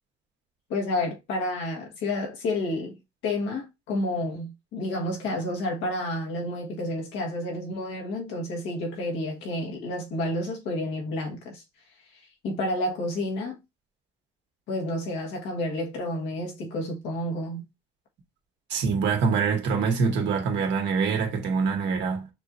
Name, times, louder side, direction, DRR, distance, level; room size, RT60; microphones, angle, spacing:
voice 1, 0.7-11.6 12.4-13.6 14.7-17.7, left 1 dB, 85° left, 1.7 m, -30 dB
voice 2, 18.7-22.3, right 5 dB, 75° right, 1.7 m, -25 dB
6.5 x 3.0 x 2.6 m
cardioid pair, 90°, 19 cm